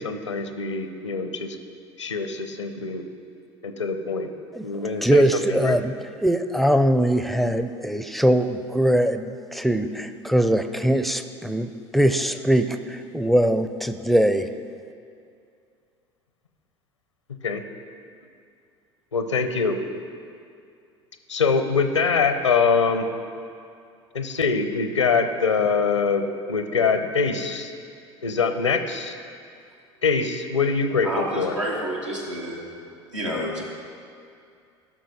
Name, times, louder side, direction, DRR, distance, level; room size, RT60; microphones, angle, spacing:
voice 1, 0.0-1.6 2.0-3.0 3.6-4.3 4.6-5.8 17.4-17.6 19.1-19.8 21.3-23.1 24.1-27.7 28.2-29.2 30.0-31.5, left 5 dB, 85° left, 8 dB, 0.7 m, -24 dB
voice 2, 5.0-5.9 6.2-14.5, right 1 dB, ahead, 9 dB, 0.5 m, -21 dB
voice 3, 31.0-32.6 33.1-33.6, equal, 90° right, -4 dB, 1.7 m, -29 dB
14.5 x 6.2 x 4.1 m, 2.4 s
figure-of-eight pair, 70°, 15 cm